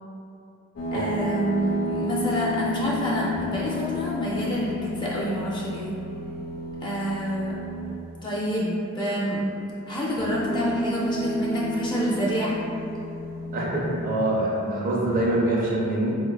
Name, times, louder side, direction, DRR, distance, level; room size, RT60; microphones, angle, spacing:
sound 1, 0.8-8.1 10.1-14.2 14.9-15.3, left 1 dB, 80° left, 0.8 m, -32 dB
voice 1, 0.9-5.9 6.8-7.5 8.2-9.4 9.9-12.6, equal, 20° left, -5 dB, 0.4 m, -27 dB
voice 2, 13.5-16.1, right 1 dB, 40° right, -4 dB, 0.4 m, -24 dB
4.3 x 2.2 x 2.3 m, 2.6 s
head